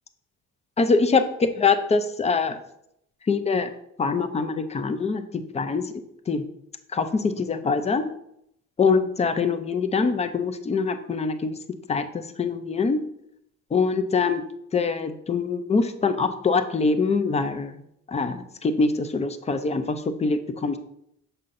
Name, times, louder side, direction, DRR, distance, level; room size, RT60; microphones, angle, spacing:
voice 1, 0.8-2.6 3.3-3.7 4.0-5.2 5.5-5.9 6.3-6.4 6.9-8.1 8.8-11.6 11.9-13.0 13.7-14.4 14.7-17.8 18.1-20.8, left 4 dB, 20° left, 9 dB, 0.4 m, -24 dB
6.6 x 5.6 x 2.5 m, 0.76 s
cardioid pair, 135°, 31 cm